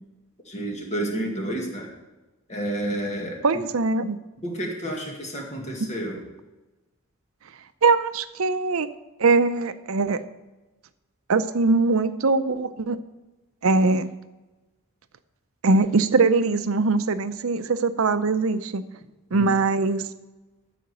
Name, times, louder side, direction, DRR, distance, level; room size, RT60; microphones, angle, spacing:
voice 1, 0.5-1.9 2.5-3.4 4.4-6.2 19.3-19.5, right 1 dB, 30° left, 0 dB, 2.0 m, -30 dB
voice 2, 3.4-4.2 7.8-8.9 9.2-10.2 11.3-13.0 13.6-14.1 15.6-18.8 19.3-20.1, right 3 dB, 80° right, 12 dB, 0.6 m, -21 dB
12.5 x 5.1 x 6.9 m, 1.1 s
head